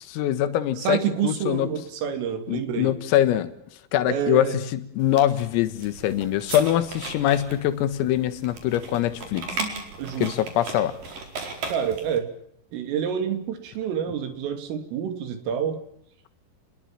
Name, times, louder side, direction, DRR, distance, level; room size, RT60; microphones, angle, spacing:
voice 1, 0.0-1.7 2.5-3.5 3.9-9.5 10.2-11.0, left 12 dB, 90° left, 10 dB, 4.2 m, -23 dB
voice 2, 0.8-2.9 4.1-4.6 10.0-10.3 11.7-12.3 12.7-15.8, right 8 dB, 75° right, 9 dB, 5.4 m, -28 dB
sound 1, 5.0-12.2, right 4 dB, 45° right, 5.7 m, -37 dB
30.0 x 21.0 x 7.5 m, 0.70 s
omnidirectional pair, 5.9 m